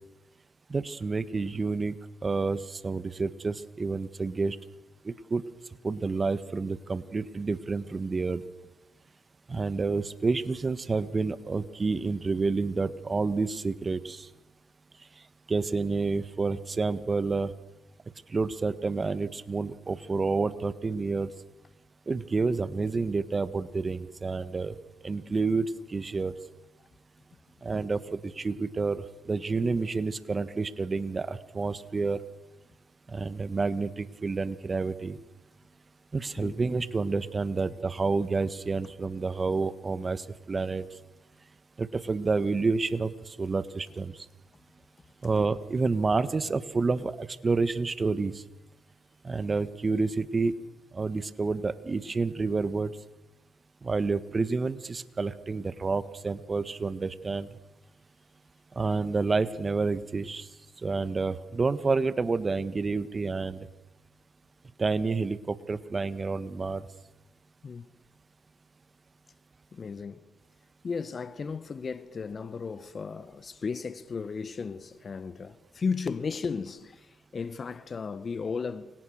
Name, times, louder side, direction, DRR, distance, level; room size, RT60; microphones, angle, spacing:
voice 1, 0.7-1.9 2.2-4.6 5.0-5.4 5.8-8.4 9.5-14.3 15.5-17.5 18.3-21.3 22.1-24.7 25.0-26.3 27.6-32.2 33.1-35.2 36.1-40.8 41.8-44.2 45.2-48.4 49.2-50.5 50.9-52.9 53.8-57.5 58.7-60.5 60.8-63.7 64.8-66.8, right 4 dB, 35° right, 1.6 m, -29 dB
voice 2, 69.7-70.2 70.8-78.9, left 5 dB, 45° left, 1.6 m, -35 dB
30.0 x 25.0 x 6.6 m
hypercardioid pair, 55°, 0 cm